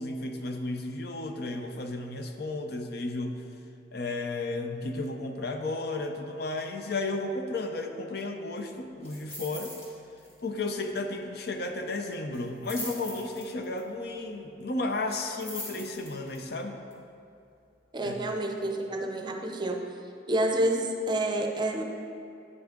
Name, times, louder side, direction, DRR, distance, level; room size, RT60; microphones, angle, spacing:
voice 1, 0.0-3.4 3.9-9.7 10.4-16.8 18.0-18.1, left 2 dB, 60° left, 5 dB, 0.6 m, -33 dB
sound 1, 9.0-9.9 10.2-10.4 10.7-10.8 12.3-13.8 15.1-16.4 16.9-17.0, left 1 dB, 35° left, 2.0 m, -41 dB
voice 2, 17.9-19.9 20.3-21.8, right 1 dB, 25° right, 3 dB, 0.6 m, -28 dB
9.2 x 6.1 x 3.7 m, 2.6 s
head